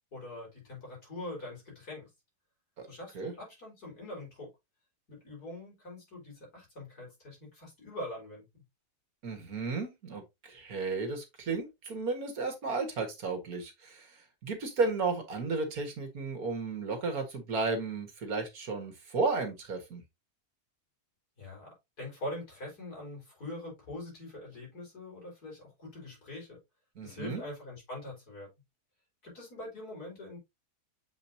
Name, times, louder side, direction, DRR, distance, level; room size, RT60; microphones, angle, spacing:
voice 1, 0.1-2.1 2.9-4.5 5.1-8.4 21.4-26.6 27.0-28.5 29.2-30.4, left 1 dB, 75° left, 5.0 m, -43 dB
voice 2, 9.2-14.1 14.4-20.0 27.0-27.5, right 4 dB, 70° right, 2.1 m, -33 dB
7.2 x 5.1 x 2.7 m
omnidirectional pair, 1.6 m